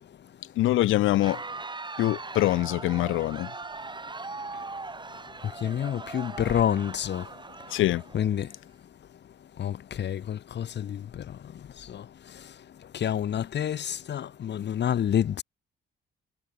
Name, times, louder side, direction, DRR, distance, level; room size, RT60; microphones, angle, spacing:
voice 1, 0.6-1.4 2.0-3.5 7.7-8.0, left 15 dB, 85° left, 1.1 m, -24 dB
Crowd, 1.0-8.6, right 3 dB, 25° right, 5.6 m, -40 dB
voice 2, 5.6-7.2 8.1-8.5 9.6-11.0 13.0-15.4, left 9 dB, 60° left, 2.4 m, -28 dB
cardioid pair, 90°, 20 cm